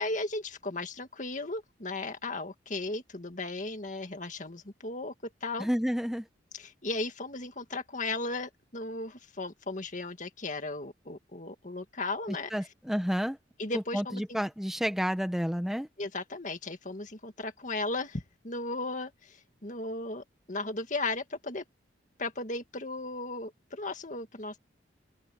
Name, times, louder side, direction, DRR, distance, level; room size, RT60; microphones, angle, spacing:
voice 1, 0.0-5.7 6.5-12.5 13.6-14.2 16.0-21.6 22.2-24.6, left 2 dB, 40° left, 2.0 m, -36 dB
voice 2, 5.6-6.3 12.3-13.4 13.7-15.9, equal, ahead, 1.0 m, -30 dB
open air
head